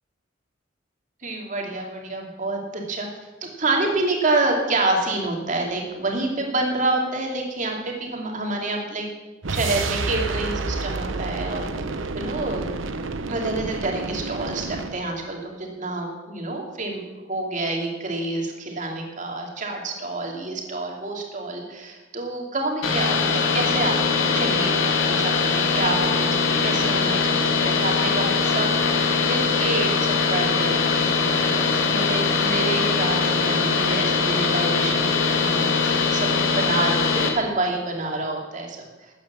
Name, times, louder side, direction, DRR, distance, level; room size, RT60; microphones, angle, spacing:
voice 1, 1.2-3.1 3.4-9.0 9.5-11.7 12.1-12.7 13.3-17.0 17.3-27.2 27.8-39.1, right 2 dB, 40° right, 1 dB, 2.7 m, -28 dB
sound 1, 9.4-15.0, right 3 dB, 80° right, 0.9 m, -29 dB
sound 2, 22.8-37.3, left 5 dB, 80° left, 2.2 m, -21 dB
13.5 x 8.9 x 7.4 m, 1.1 s
head